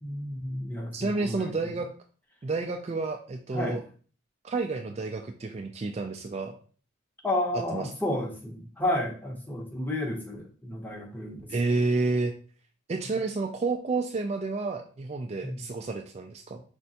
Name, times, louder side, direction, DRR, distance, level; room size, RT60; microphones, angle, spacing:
voice 1, 0.0-1.7 3.5-3.8 7.2-11.5 15.4-15.6, left 1 dB, 10° left, 0 dB, 0.8 m, -32 dB
voice 2, 0.9-1.9 2.4-3.8 4.4-6.6 7.7-7.9 11.5-12.3 12.9-16.6, right 3 dB, 30° right, 5 dB, 0.3 m, -30 dB
5.2 x 3.3 x 2.8 m, 0.41 s
head